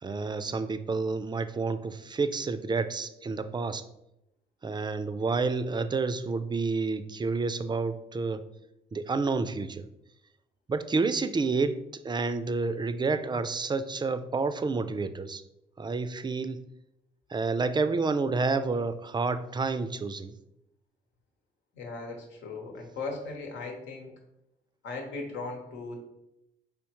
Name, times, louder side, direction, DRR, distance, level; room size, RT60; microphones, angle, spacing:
voice 1, 0.0-3.8 4.6-8.4 8.9-9.9 10.7-11.8 12.0-15.4 15.8-16.6 17.3-20.4, right 4 dB, 25° right, 12 dB, 0.4 m, -29 dB
voice 2, 21.7-24.1 24.8-26.1, left 3 dB, 80° left, 1 dB, 1.0 m, -38 dB
4.9 x 3.6 x 2.9 m, 0.86 s
supercardioid pair, 55°, 19 cm